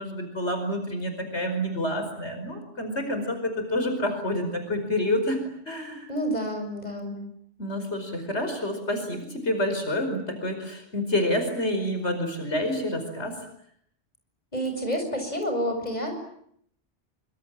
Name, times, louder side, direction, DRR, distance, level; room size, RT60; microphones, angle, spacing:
voice 1, 0.0-6.1 7.6-13.3, left 1 dB, 80° left, 6 dB, 5.3 m, -28 dB
voice 2, 6.1-7.2 14.5-16.2, equal, 40° left, 4 dB, 7.2 m, -29 dB
26.0 x 25.5 x 9.0 m, 0.70 s
omnidirectional pair, 1.1 m